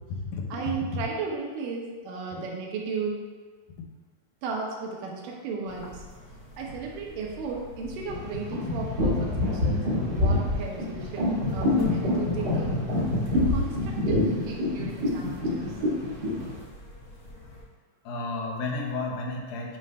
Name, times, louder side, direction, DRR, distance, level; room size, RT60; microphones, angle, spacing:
voice 1, 0.5-3.2 4.4-6.0 6.6-12.8 13.3-15.8, right 4 dB, 75° right, -1 dB, 2.4 m, -35 dB
sound 1, 5.7-17.6, left 5 dB, 70° left, 1.2 m, -42 dB
sound 2, 8.1-16.5, left 1 dB, 50° right, 1.2 m, -26 dB
voice 2, 18.0-19.8, left 3 dB, 85° left, 0 dB, 2.7 m, -32 dB
7.5 x 3.2 x 5.4 m, 1.4 s
omnidirectional pair, 4.0 m